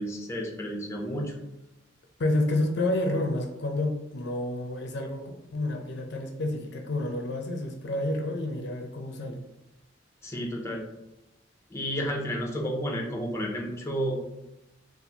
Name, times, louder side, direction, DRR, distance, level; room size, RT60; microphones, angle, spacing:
voice 1, 0.0-1.4 10.2-10.8 11.7-14.2, equal, 15° left, 0 dB, 0.5 m, -31 dB
voice 2, 2.2-9.4, left 1 dB, 65° left, 4 dB, 0.5 m, -29 dB
4.1 x 2.4 x 2.8 m, 0.94 s
head